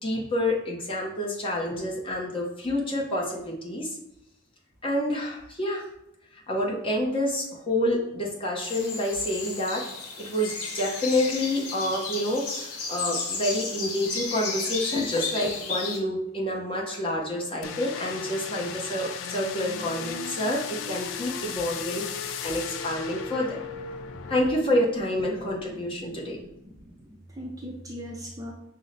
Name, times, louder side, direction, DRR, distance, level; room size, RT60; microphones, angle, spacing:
voice 1, 0.0-4.0 4.8-5.8 6.3-9.8 10.2-23.6 24.3-26.4, left 1 dB, 25° left, -2 dB, 0.8 m, -28 dB
sound 1, 8.6-16.0, left 4 dB, 80° left, 0.9 m, -33 dB
sound 2, 17.6-24.5, left 7 dB, 60° left, 0.3 m, -36 dB
voice 2, 23.9-24.3 26.0-26.4 26.6-26.9 27.4-28.5, equal, 15° right, -2 dB, 0.4 m, -40 dB
5.6 x 2.1 x 3.9 m, 0.83 s
head